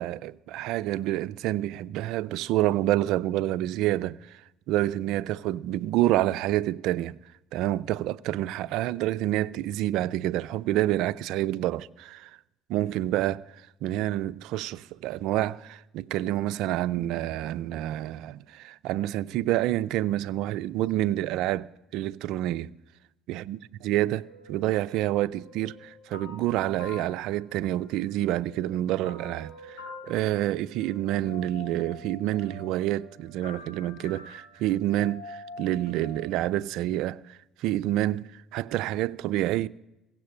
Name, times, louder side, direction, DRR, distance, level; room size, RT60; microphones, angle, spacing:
voice 1, 0.0-4.4 4.7-7.2 7.5-12.3 12.7-13.4 13.8-22.7 23.3-23.6 23.8-39.7, right 14 dB, 70° right, 0.4 m, -28 dB
sound 1, 24.2-28.1 28.4-36.5, left 1 dB, 80° left, 4.2 m, -46 dB
16.0 x 7.4 x 7.7 m
supercardioid pair, 75°, 0 cm